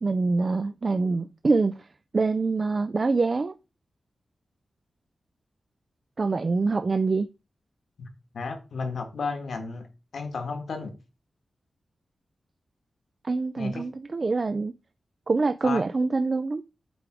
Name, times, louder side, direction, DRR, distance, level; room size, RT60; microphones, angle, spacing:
voice 1, 0.0-1.9 2.1-3.5 6.2-7.3 13.2-14.7 15.3-16.6, right 3 dB, 35° right, 0.3 m, -25 dB
voice 2, 8.3-9.9 10.1-10.9 13.6-13.8 15.6-15.8, left 4 dB, 75° left, 1.7 m, -32 dB
8.4 x 3.5 x 4.8 m
wide cardioid pair, 150°, 0 cm